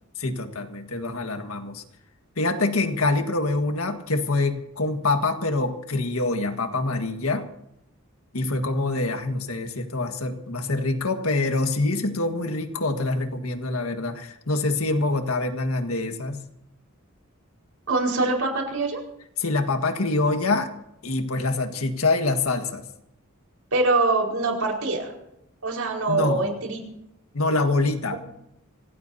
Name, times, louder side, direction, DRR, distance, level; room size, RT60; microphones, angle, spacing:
voice 1, 0.2-1.8 2.4-7.5 8.3-16.4 19.4-20.7 21.0-22.8 26.1-26.6 27.3-28.2, left 2 dB, 80° left, 5 dB, 1.7 m, -25 dB
voice 2, 17.9-19.0 23.7-25.1 25.6-26.8 28.1-28.3, right 3 dB, 85° right, 0 dB, 5.0 m, -24 dB
26.0 x 17.5 x 2.8 m, 0.82 s
head